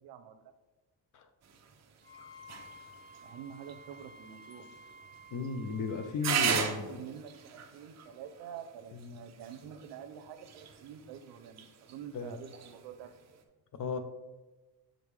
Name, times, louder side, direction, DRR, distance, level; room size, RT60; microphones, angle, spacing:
voice 1, 0.0-0.4 3.2-4.7 6.9-13.2, right 8 dB, 90° right, 9 dB, 0.7 m, -47 dB
sound 1, 1.4-13.4, right 7 dB, 40° right, 0.8 m, -40 dB
Wind instrument woodwind instrument, 2.0-6.1, equal, 25° left, 1.7 m, -53 dB
voice 2, 5.3-7.0 9.0-9.2 12.1-12.3 13.7-14.0, left 5 dB, 50° left, 8 dB, 0.7 m, -35 dB
7.6 x 5.2 x 3.3 m, 1.1 s
cardioid pair, 145°, 39 cm